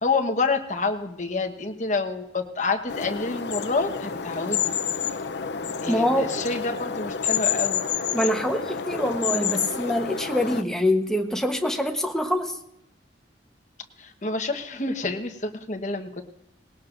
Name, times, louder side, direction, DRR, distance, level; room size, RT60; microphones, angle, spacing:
voice 1, 0.0-4.7 5.8-7.8 14.0-16.2, left 3 dB, 45° left, 5 dB, 1.2 m, -28 dB
sound 1, 2.9-10.6, left 7 dB, 75° left, 0.6 m, -29 dB
voice 2, 5.9-6.4 8.1-12.6, left 1 dB, 5° left, 3 dB, 1.1 m, -25 dB
20.0 x 18.0 x 2.6 m, 0.82 s
head